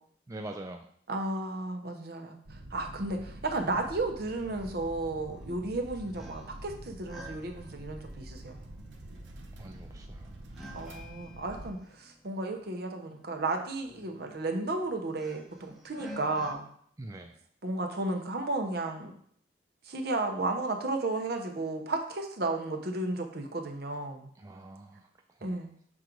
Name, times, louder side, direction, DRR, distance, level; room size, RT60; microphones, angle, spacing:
voice 1, 0.3-0.9 9.6-10.3 17.0-17.4 24.3-25.6, right 1 dB, 20° right, 4 dB, 0.3 m, -44 dB
voice 2, 1.1-8.6 10.7-16.7 17.6-19.2 19.8-24.3 25.4-25.7, right 2 dB, 60° right, 4 dB, 0.9 m, -33 dB
sound 1, 2.5-11.7, right 1 dB, 80° right, 0.8 m, -46 dB
sound 2, 4.3-16.5, equal, ahead, 0.8 m, -52 dB
6.3 x 3.9 x 4.5 m, 0.63 s
head